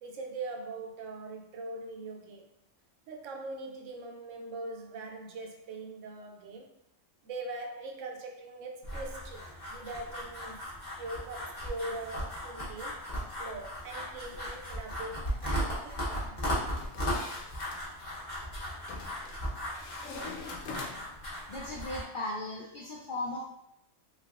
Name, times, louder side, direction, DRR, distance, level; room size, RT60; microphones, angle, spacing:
voice 1, 0.0-2.5 3.1-6.7 7.2-10.6 11.0-13.0 13.4-16.4, right 2 dB, 75° right, 0.9 m, -41 dB
sound 1, 8.8-22.0, equal, 40° left, 1.0 m, -37 dB
sound 2, 16.7-17.8 18.9-19.4 19.7-21.2, left 4 dB, 80° left, 0.9 m, -44 dB
voice 2, 21.5-23.4, left 2 dB, 65° left, 0.5 m, -37 dB
3.3 x 3.3 x 2.4 m
omnidirectional pair, 1.4 m